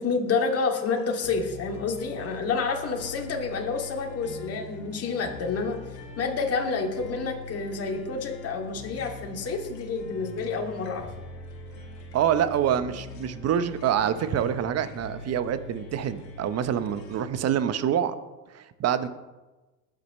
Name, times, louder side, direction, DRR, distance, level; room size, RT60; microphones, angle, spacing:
voice 1, 0.0-5.8 6.2-11.1, left 4 dB, 30° left, 1 dB, 2.7 m, -29 dB
sound 1, 0.8-17.2, left 2 dB, 80° left, 2.7 m, -42 dB
voice 2, 12.1-18.1 18.5-19.1, right 9 dB, 30° right, 12 dB, 1.1 m, -26 dB
20.5 x 9.0 x 3.2 m, 1.1 s
hypercardioid pair, 95°, 49 cm